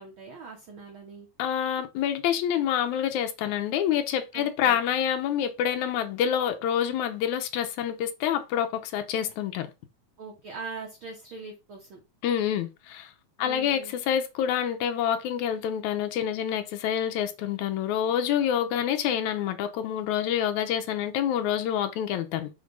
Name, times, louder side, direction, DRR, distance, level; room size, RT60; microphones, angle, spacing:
voice 1, 0.0-1.3 4.3-4.8 10.2-12.0 13.4-13.9, right 4 dB, 60° right, 1.5 m, -41 dB
voice 2, 1.4-9.7 12.2-13.1 13.4-22.5, left 9 dB, 75° left, 2.1 m, -27 dB
6.6 x 2.8 x 5.2 m
omnidirectional pair, 3.6 m